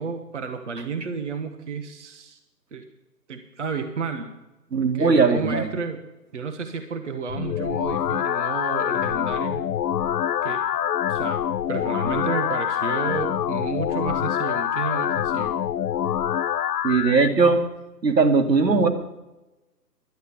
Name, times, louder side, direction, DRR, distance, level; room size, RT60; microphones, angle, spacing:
voice 1, 0.0-2.4 2.7-2.8 3.3-4.3 4.8-6.0 6.3-9.6 10.4-10.6 11.1-11.4 11.7-15.6, right 5 dB, 45° right, 5 dB, 1.1 m, -31 dB
voice 2, 4.7-5.7 16.8-17.6 18.0-18.9, right 4 dB, 75° right, 5 dB, 2.2 m, -19 dB
sound 1, 7.3-17.3, left 10 dB, 70° left, 0.5 m, -25 dB
11.5 x 8.2 x 8.5 m, 1.0 s
hypercardioid pair, 160°, 50 cm